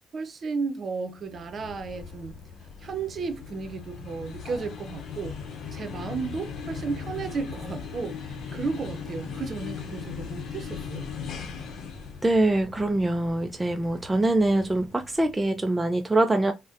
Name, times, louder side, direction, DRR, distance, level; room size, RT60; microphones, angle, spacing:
voice 1, 0.1-2.4 2.8-5.3 5.7-11.1, right 4 dB, 50° right, 0.7 m, -33 dB
sound 1, 1.2-15.7, left 6 dB, 75° left, 0.8 m, -39 dB
voice 2, 12.2-16.5, right 2 dB, 15° right, 0.3 m, -24 dB
4.0 x 2.1 x 2.4 m
cardioid pair, 90°, 0 cm